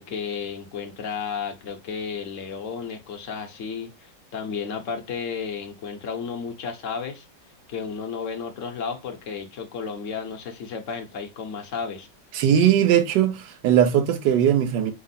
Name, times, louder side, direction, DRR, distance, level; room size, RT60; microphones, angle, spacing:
voice 1, 0.0-7.3 7.7-12.1, left 6 dB, 55° left, 0.9 m, -33 dB
voice 2, 12.3-14.9, right 9 dB, 70° right, 1.2 m, -19 dB
5.2 x 2.0 x 4.0 m
omnidirectional pair, 2.1 m